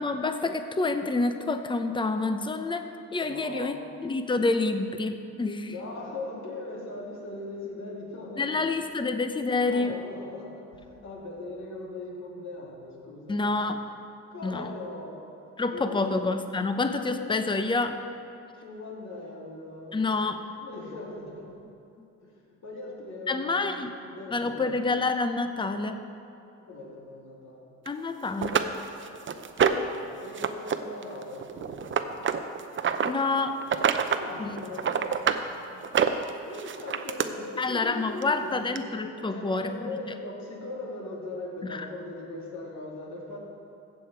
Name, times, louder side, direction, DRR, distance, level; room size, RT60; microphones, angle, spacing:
voice 1, 0.0-3.7 4.0-5.8 8.4-9.9 13.3-13.8 14.4-14.7 15.6-18.0 19.9-20.4 23.3-23.9 24.3-26.0 27.9-28.6 33.0-33.6 34.4-34.5 37.6-40.0 41.7-41.9, left 3 dB, 15° left, 8 dB, 0.7 m, -28 dB
voice 2, 3.2-3.8 5.7-9.1 9.5-13.5 14.3-15.2 15.7-16.3 17.1-17.3 18.6-20.1 20.4-21.5 22.2-24.7 26.7-27.7 29.9-32.0 34.1-35.1 36.4-38.9 39.3-43.4, left 2 dB, 65° left, -3 dB, 3.1 m, -40 dB
sound 1, 27.9-28.0 28.4-30.0 30.3-30.8 31.0-33.1 33.6-34.2 34.6-35.4 35.8-37.3 38.2-38.3 38.8-38.9, right 7 dB, 40° right, 0.7 m, -26 dB
15.0 x 7.6 x 4.6 m, 2.7 s
cardioid pair, 90°, 30 cm